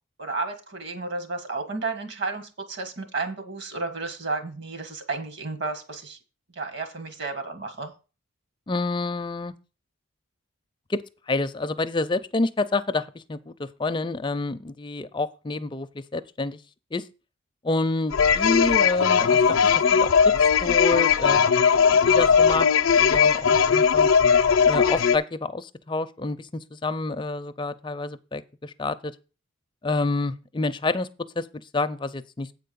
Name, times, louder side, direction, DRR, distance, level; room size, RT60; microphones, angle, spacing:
voice 1, 0.2-6.2 6.5-7.9, right 3 dB, 55° right, 1.6 m, -32 dB
voice 2, 8.7-9.5 10.9-16.6 16.9-17.1 17.6-19.6 19.9-20.3 20.6-21.5 21.9-22.7 22.9-24.1 24.7-29.1 29.8-31.1 31.4-32.5, left 3 dB, 20° left, 0.4 m, -28 dB
sound 1, 18.1-25.2, left 6 dB, 70° left, 0.5 m, -19 dB
8.2 x 4.6 x 6.8 m
head